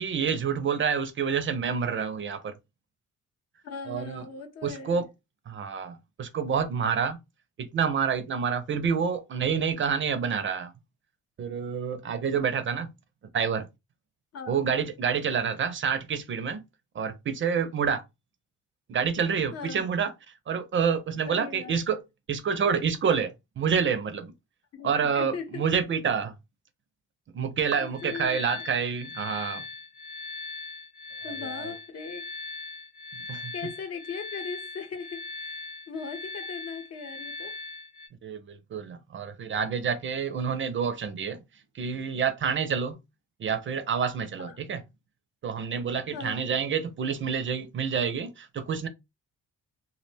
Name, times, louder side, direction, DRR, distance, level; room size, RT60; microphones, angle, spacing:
voice 1, 0.0-2.5 3.9-4.2 4.6-5.1 5.5-7.2 7.6-10.7 11.4-12.9 13.3-13.7 14.5-16.6 17.0-18.0 18.9-20.1 20.5-22.0 22.3-24.3 24.8-26.3 27.3-29.6 31.4-31.7 33.3-33.5 38.2-41.4 41.7-43.0 43.4-44.8 45.4-48.9, right 6 dB, 40° right, 0.4 m, -28 dB
voice 2, 3.6-5.0 14.3-14.6 19.5-19.8 21.2-21.8 24.7-25.7 27.8-28.4 31.2-32.3 33.5-37.6 44.4-44.6 46.1-46.4, left 5 dB, 55° left, 0.7 m, -39 dB
sound 1, 27.7-38.1, left 3 dB, 20° left, 0.7 m, -40 dB
2.3 x 2.1 x 3.2 m
cardioid pair, 90°, 30 cm